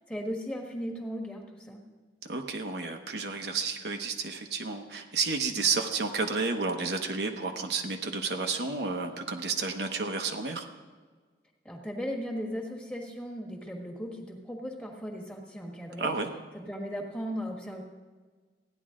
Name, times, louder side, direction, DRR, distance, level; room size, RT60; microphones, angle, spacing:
voice 1, 0.1-1.8 11.6-16.1 16.5-17.8, equal, 5° left, 0 dB, 1.4 m, -37 dB
voice 2, 2.2-10.7 16.0-16.3, right 4 dB, 65° right, 4 dB, 1.0 m, -31 dB
15.0 x 10.0 x 3.7 m, 1.4 s
head